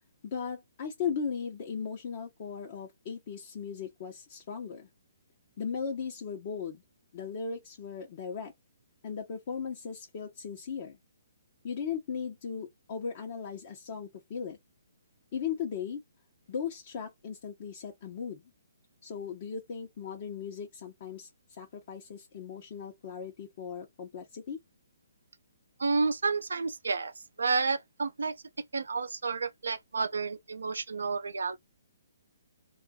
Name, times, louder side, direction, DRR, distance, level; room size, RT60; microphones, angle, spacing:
voice 1, 0.2-4.9 5.6-6.8 7.1-8.5 9.0-11.0 11.6-14.6 15.3-16.0 16.5-18.4 19.0-21.3 21.6-24.6, left 6 dB, 45° left, 0.8 m, -37 dB
voice 2, 25.8-27.1 27.4-28.4 28.7-31.6, right 4 dB, 80° right, 0.5 m, -30 dB
2.6 x 2.4 x 2.3 m
hypercardioid pair, 135°, 0 cm